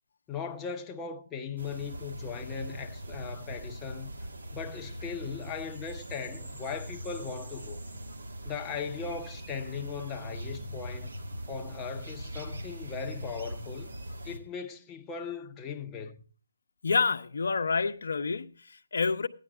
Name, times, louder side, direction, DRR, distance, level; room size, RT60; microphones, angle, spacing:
voice 1, 0.3-4.1 4.5-7.8 8.4-11.1 11.5-13.9 14.2-16.2, left 6 dB, 15° left, 0.8 m, -38 dB
sound 1, 1.6-14.4, right 1 dB, 75° right, 2.0 m, -41 dB
voice 2, 16.8-19.3, left 4 dB, 65° left, 0.8 m, -28 dB
15.0 x 9.9 x 3.6 m
figure-of-eight pair, 155°, 0 cm